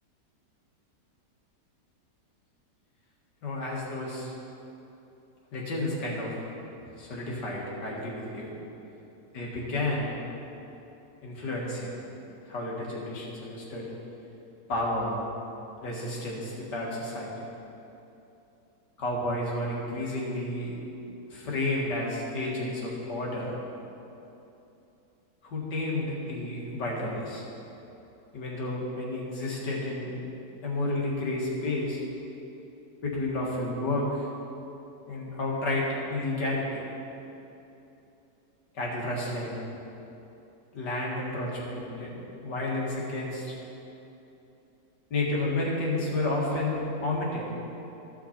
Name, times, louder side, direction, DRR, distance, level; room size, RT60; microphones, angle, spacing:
voice 1, 3.4-4.3 5.5-6.4 7.0-8.5 9.3-10.2 11.2-11.9 12.5-13.9 14.7-15.2 15.8-17.3 19.0-20.8 21.3-23.6 25.4-27.5 28.3-30.2 30.6-32.0 33.0-34.3 35.1-36.8 38.7-39.7 40.7-43.6 45.1-47.4, left 2 dB, 80° left, -4 dB, 2.3 m, -31 dB
13.5 x 5.8 x 4.3 m, 2.9 s
omnidirectional pair, 1.8 m